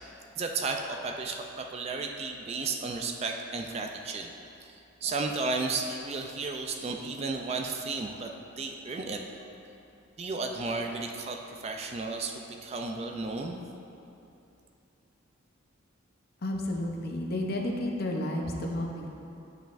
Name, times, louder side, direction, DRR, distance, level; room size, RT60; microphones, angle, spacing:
voice 1, 0.4-4.3 4.6-4.7 5.0-9.4 10.2-13.6, right 3 dB, 30° right, 3 dB, 0.3 m, -33 dB
voice 2, 16.4-19.1, left 1 dB, 50° left, 0 dB, 0.6 m, -31 dB
9.2 x 5.6 x 2.5 m, 2.7 s
head